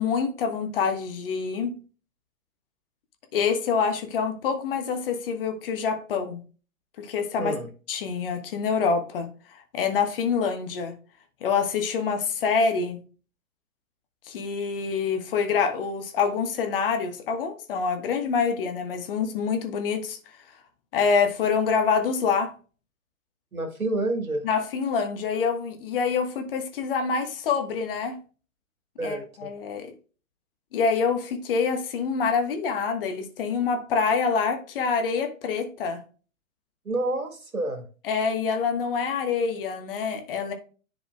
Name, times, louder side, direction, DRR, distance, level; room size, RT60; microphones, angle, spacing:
voice 1, 0.0-1.8 3.3-6.4 7.0-7.5 7.9-10.9 11.4-13.0 14.2-20.2 20.9-22.5 24.4-28.2 29.0-29.9 30.7-36.0 38.1-40.5, left 5 dB, 40° left, 1.3 m, -26 dB
voice 2, 7.4-7.7 23.5-24.4 29.0-29.5 36.9-37.8, right 2 dB, 85° right, 1.9 m, -28 dB
10.5 x 4.9 x 2.2 m
figure-of-eight pair, 125°, 42 cm